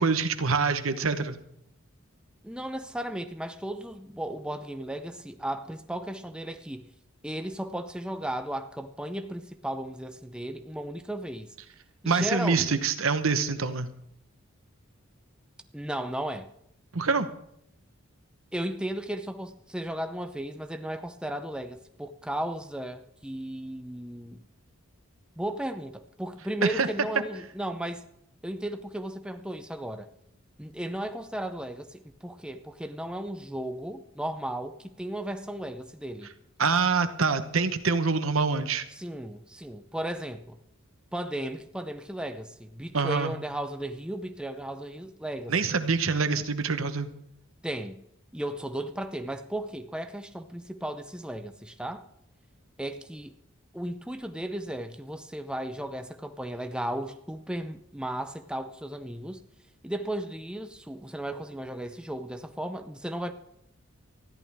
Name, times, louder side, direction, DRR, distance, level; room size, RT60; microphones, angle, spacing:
voice 1, 0.0-1.4 12.0-13.9 16.9-17.3 26.8-26.9 36.6-38.8 42.9-43.3 45.5-47.1, right 4 dB, 70° right, 1.1 m, -25 dB
voice 2, 2.4-6.9 7.2-11.5 12.0-12.8 15.7-16.5 18.5-24.4 25.4-28.0 28.4-30.1 30.6-36.3 38.9-40.6 41.1-45.6 47.6-48.0 48.3-52.0 52.8-53.3 53.7-59.4 59.8-63.3, right 1 dB, 5° right, 0.6 m, -35 dB
19.5 x 14.0 x 3.6 m
head